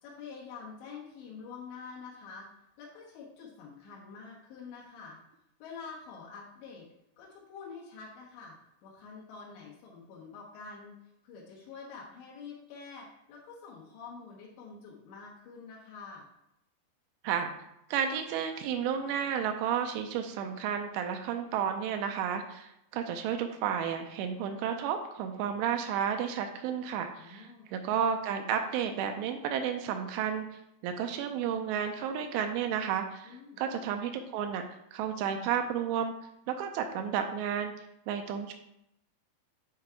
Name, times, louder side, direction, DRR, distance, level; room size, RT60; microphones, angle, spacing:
voice 1, 0.0-2.5 2.8-5.2 5.6-6.9 7.2-8.6 8.8-11.0 11.2-16.3 27.2-27.7 33.3-33.6, left 5 dB, 85° left, -5 dB, 3.5 m, -47 dB
voice 2, 17.9-30.5 30.8-34.6 34.9-36.1 36.5-37.7 38.1-38.5, right 8 dB, 85° right, 5 dB, 2.8 m, -32 dB
8.6 x 3.7 x 4.5 m, 0.80 s
omnidirectional pair, 5.0 m